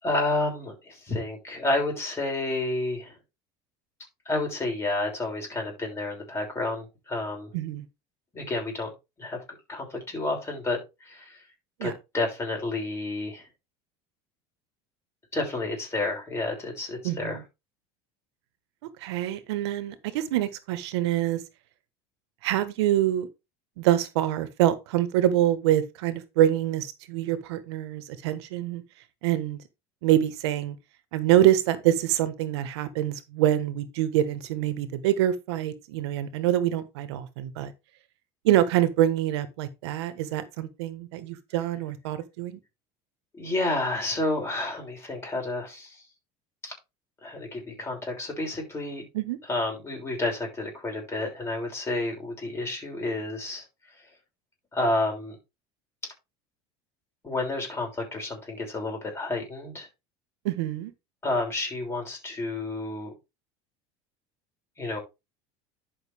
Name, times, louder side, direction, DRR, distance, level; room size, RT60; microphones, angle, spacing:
voice 1, 0.0-3.2 4.2-7.5 8.3-8.9 9.2-9.4 9.7-11.5 11.8-13.5 15.3-17.4 43.3-46.0 46.6-46.7 47.2-49.0 49.4-53.6 54.7-55.4 56.0-56.1 57.2-59.9 61.2-63.1 64.8-65.0, left 2 dB, 20° left, 6.3 m, -30 dB
voice 2, 7.5-7.8 11.8-11.9 17.0-17.4 19.0-21.4 22.4-23.3 23.8-28.8 29.2-29.6 30.0-30.7 31.1-37.7 38.4-42.6 49.1-49.4 60.4-60.9, right 12 dB, 90° right, 1.4 m, -25 dB
11.5 x 5.9 x 3.5 m
supercardioid pair, 125°, 14 cm